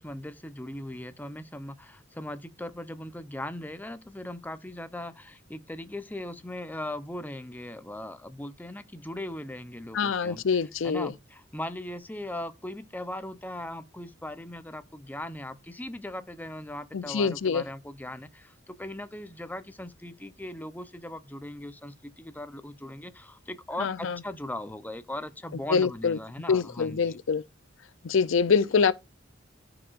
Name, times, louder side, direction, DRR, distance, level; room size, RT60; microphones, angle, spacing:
voice 1, 0.0-10.4 10.8-27.2, left 1 dB, 10° left, 0.7 m, -39 dB
voice 2, 9.9-11.1 16.9-17.6 23.8-24.2 25.7-26.2 26.5-27.4 28.0-28.9, left 5 dB, 80° left, 0.5 m, -25 dB
14.0 x 4.9 x 2.5 m
head